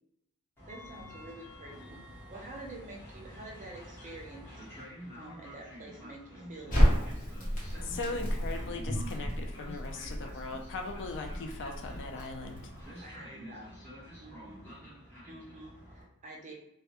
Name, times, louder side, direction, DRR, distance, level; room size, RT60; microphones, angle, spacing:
Train, 0.6-16.0, equal, 10° left, 0.9 m, -49 dB
voice 1, 0.7-2.0 2.3-4.5 4.8-4.9 5.2-7.3 13.0-13.7 14.2-14.6 15.3-16.5, right 2 dB, 35° right, -1 dB, 0.5 m, -48 dB
Crackle, 6.7-12.8, equal, 40° left, 0.9 m, -31 dB
voice 2, 7.8-12.6, left 3 dB, 55° left, 3 dB, 0.4 m, -39 dB
2.2 x 2.1 x 2.8 m, 0.84 s
head